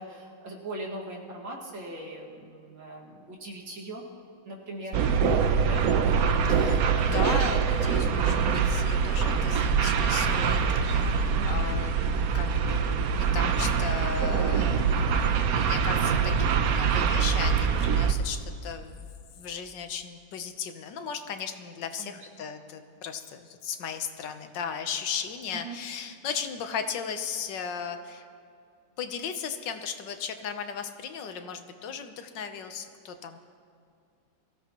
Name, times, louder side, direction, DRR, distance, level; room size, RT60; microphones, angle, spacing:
voice 1, 0.0-4.0 4.4-5.3 5.6-6.2 11.3-11.8 15.1-15.4 22.0-22.2 25.5-25.8, right 1 dB, 80° right, -3 dB, 2.8 m, -40 dB
sound 1, 4.9-18.1, right 6 dB, 65° right, 1.0 m, -24 dB
voice 2, 6.5-11.9 12.3-13.0 13.3-15.2 15.5-19.1 19.4-28.2 29.0-33.4, left 7 dB, 75° left, 8 dB, 1.5 m, -36 dB
23.0 x 15.5 x 3.0 m, 2.4 s
omnidirectional pair, 2.0 m